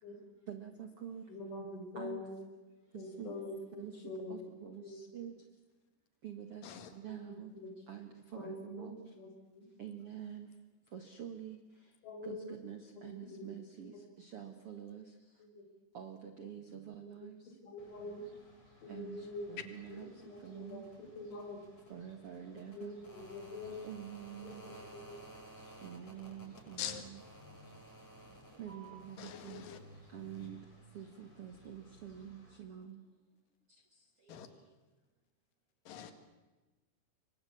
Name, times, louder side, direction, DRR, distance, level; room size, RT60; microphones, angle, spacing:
voice 1, 0.5-1.2 1.9-2.2 3.2-3.4 3.8-4.0 4.3-5.3 6.2-6.6 6.9-7.5 7.9-9.0 9.8-10.5 10.9-11.6 12.2-15.0 15.9-17.4 18.9-19.2 19.5-20.1 20.4-20.8 21.9-22.9 23.8-24.6 25.8-27.2 28.6-29.6 30.1-30.6 30.9-33.0, right 9 dB, 70° right, 1.3 m, -47 dB
voice 2, 1.3-2.3 2.9-4.3 4.7-4.9 7.5-7.7 8.4-8.5 8.8-9.3 9.5-9.7 12.0-12.5 13.3-13.4 13.9-14.0 15.4-15.6 17.2-17.3 17.6-18.2 18.8-19.5 19.9-21.6 22.7-23.8 24.4-24.5 24.9-25.2, left 2 dB, 85° left, 8.3 m, -45 dB
sound 1, 17.8-32.6, right 1 dB, 35° left, 8.1 m, -56 dB
voice 3, 29.2-29.8 34.3-34.5 35.9-36.1, left 9 dB, 55° left, 3.2 m, -43 dB
27.0 x 23.5 x 8.7 m
omnidirectional pair, 5.3 m